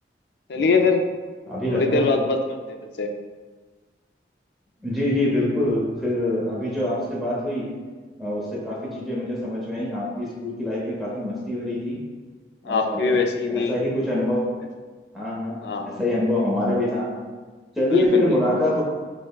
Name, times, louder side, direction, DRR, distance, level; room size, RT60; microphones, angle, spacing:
voice 1, 0.5-1.0 1.7-3.1 12.6-13.8 15.6-16.0 17.9-18.7, left 4 dB, 70° left, 4 dB, 0.3 m, -23 dB
voice 2, 1.5-2.1 4.8-7.7 8.2-12.0 12.6-13.2 13.5-14.5 15.1-17.1 17.7-18.8, left 1 dB, ahead, -7 dB, 0.7 m, -25 dB
5.4 x 2.1 x 2.3 m, 1.4 s
head